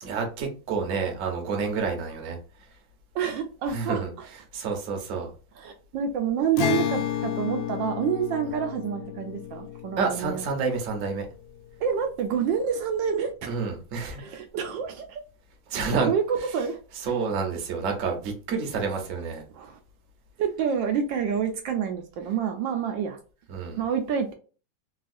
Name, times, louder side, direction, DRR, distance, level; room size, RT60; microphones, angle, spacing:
voice 1, 0.0-2.4 3.7-4.1 4.5-5.3 10.0-11.2 13.4-14.2 15.7-16.1 17.0-19.4 23.5-23.8, right 5 dB, 55° right, 2 dB, 1.0 m, -29 dB
voice 2, 3.1-4.0 5.6-10.4 11.8-13.5 14.2-15.2 15.7-16.8 17.1-17.2 19.5-19.8 20.4-23.2 23.8-24.3, right 7 dB, 75° right, 4 dB, 1.2 m, -28 dB
Acoustic guitar, 6.6-12.0, left 10 dB, 85° left, 1.4 m, -32 dB
3.5 x 2.4 x 2.4 m, 0.37 s
omnidirectional pair, 2.1 m